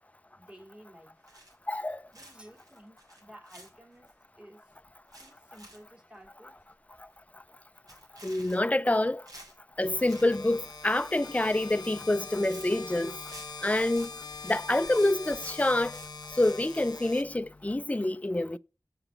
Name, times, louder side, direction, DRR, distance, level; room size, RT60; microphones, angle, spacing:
voice 1, 0.4-1.2 2.1-4.7 5.2-6.5, equal, 15° right, 2.2 m, -53 dB
sound 1, 1.3-1.8 2.1-4.1 4.5-4.6 4.9-5.9 6.2-6.3 6.7-6.8 7.0-7.3 7.7-8.9 9.2-10.3 10.6-11.1 11.6-11.9 12.2-14.6 14.8-16.6, right 1 dB, 65° right, 3.2 m, -51 dB
voice 2, 1.7-2.0 8.2-9.2 9.8-13.2 13.6-14.1 14.4-16.0 16.4-18.6, left 1 dB, 20° left, 0.4 m, -27 dB
sound 2, 9.8-17.8, left 4 dB, 80° left, 0.8 m, -43 dB
6.6 x 4.9 x 4.9 m
wide cardioid pair, 40°, 7 cm